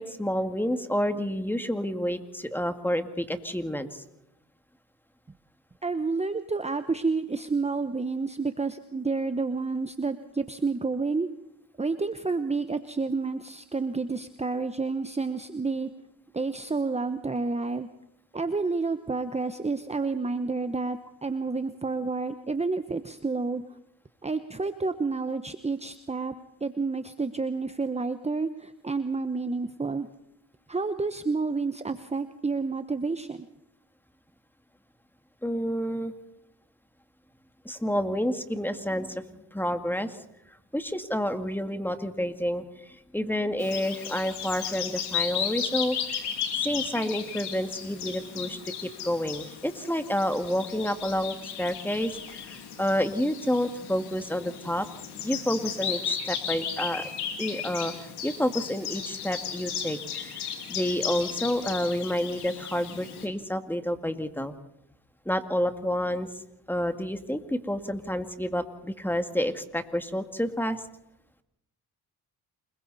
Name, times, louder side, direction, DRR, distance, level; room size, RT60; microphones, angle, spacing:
voice 1, 0.0-4.0 35.4-36.1 37.7-39.2 39.5-40.2 40.7-46.0 46.6-54.9 55.2-57.0 57.4-57.9 58.2-64.5 65.3-66.3 66.7-70.8, equal, 5° left, 8 dB, 2.0 m, -29 dB
voice 2, 5.8-11.3 11.8-15.9 16.3-17.9 18.3-23.6 24.2-26.3 26.6-30.1 30.7-33.5, right 4 dB, 15° right, 10 dB, 1.0 m, -29 dB
Bird vocalization bird call bird song, 43.6-63.3, left 7 dB, 85° left, 3.1 m, -35 dB
28.5 x 22.0 x 4.2 m, 0.84 s
cardioid pair, 70°, 38 cm